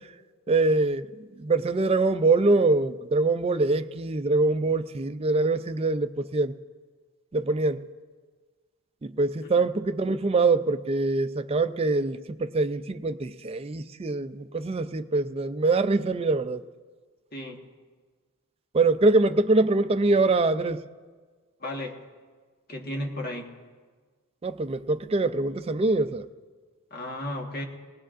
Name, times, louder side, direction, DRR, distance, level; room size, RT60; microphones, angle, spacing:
voice 1, 0.5-1.1 1.4-6.5 7.3-7.8 9.0-16.6 18.7-20.8 24.4-26.3, right 3 dB, 25° right, 0.4 m, -24 dB
voice 2, 17.3-17.6 21.6-22.0 22.7-23.5 26.9-27.6, left 1 dB, 45° left, 1.5 m, -34 dB
20.0 x 18.5 x 2.5 m
head